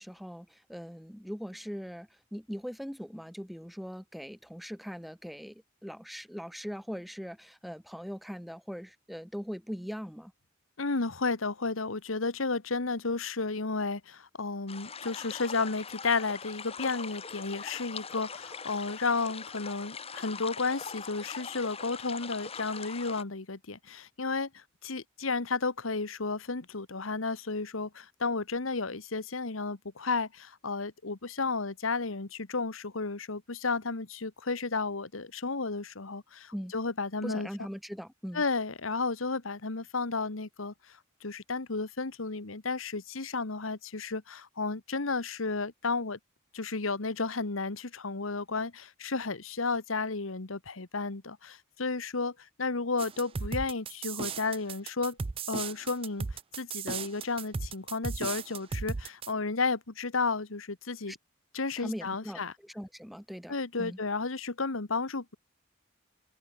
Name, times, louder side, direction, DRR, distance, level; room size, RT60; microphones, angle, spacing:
voice 1, 0.0-10.3 36.5-36.7 37.2-38.4 61.1-61.2 61.8-64.0, equal, ahead, 2.1 m, -41 dB
voice 2, 10.8-37.5 38.3-46.2 46.5-55.2 55.5-61.1 61.5-62.5 63.5-65.4, left 4 dB, 85° left, 1.5 m, -33 dB
sound 1, 14.7-23.2, left 5 dB, 30° left, 1.8 m, -42 dB
sound 2, 53.0-59.3, right 5 dB, 30° right, 0.4 m, -36 dB
head